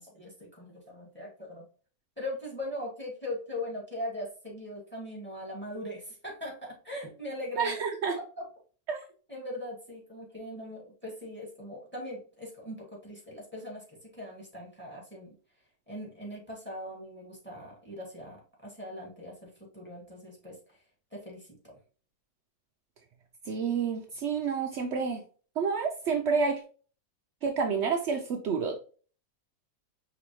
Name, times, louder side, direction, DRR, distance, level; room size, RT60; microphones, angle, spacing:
voice 1, 0.0-1.7 2.2-7.8 8.2-8.4 9.3-15.3 15.9-20.6 21.1-21.7, left 1 dB, 5° left, -2 dB, 1.8 m, -40 dB
voice 2, 7.6-8.2 8.9-9.0 23.5-25.2 25.6-26.6 27.4-28.8, right 5 dB, 80° right, 3 dB, 0.6 m, -29 dB
5.0 x 3.4 x 3.0 m, 0.40 s
omnidirectional pair, 1.8 m